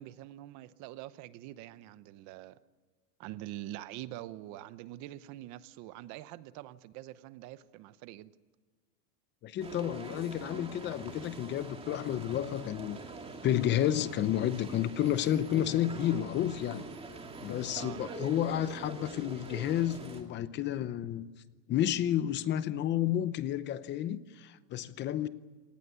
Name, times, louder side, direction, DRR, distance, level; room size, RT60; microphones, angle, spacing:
voice 1, 0.0-2.6 3.2-8.3 17.8-18.2, right 14 dB, 40° right, 0.9 m, -45 dB
voice 2, 9.4-13.0 13.4-16.8 17.4-21.3 21.7-25.3, left 11 dB, 25° left, 0.7 m, -31 dB
sound 1, 9.6-20.2, right 3 dB, 10° right, 2.4 m, -44 dB
27.0 x 19.0 x 8.2 m
supercardioid pair, 160°, 47 cm